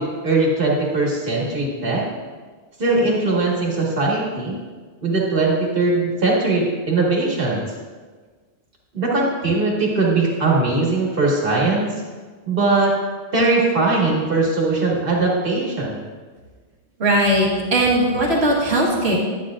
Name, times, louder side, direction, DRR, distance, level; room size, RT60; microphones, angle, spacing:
voice 1, 0.0-2.0 2.8-4.6 5.0-7.6 8.9-11.9 12.5-12.9 13.3-16.0, right 3 dB, 55° right, -3 dB, 1.9 m, -20 dB
voice 2, 17.0-19.2, right 1 dB, 70° right, -3 dB, 1.7 m, -18 dB
12.0 x 8.9 x 2.5 m, 1.4 s
omnidirectional pair, 1.1 m